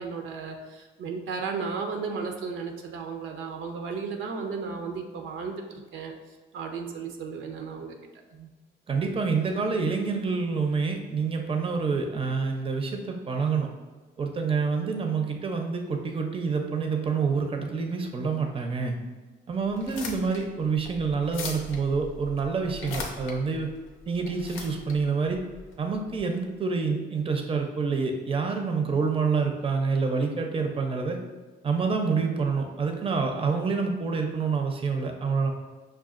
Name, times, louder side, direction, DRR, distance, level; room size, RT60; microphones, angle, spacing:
voice 1, 0.0-6.1 6.5-8.0 8.3-8.5, right 5 dB, 80° right, 3 dB, 0.5 m, -34 dB
voice 2, 8.9-13.7 14.2-18.9 19.5-23.7 24.1-25.4 25.8-31.2 31.6-35.5, right 5 dB, 25° right, 3 dB, 0.5 m, -27 dB
sound 1, 19.7-26.2, left 3 dB, 90° left, 0.6 m, -40 dB
5.8 x 2.3 x 2.4 m, 1.3 s
cardioid pair, 90°, 20 cm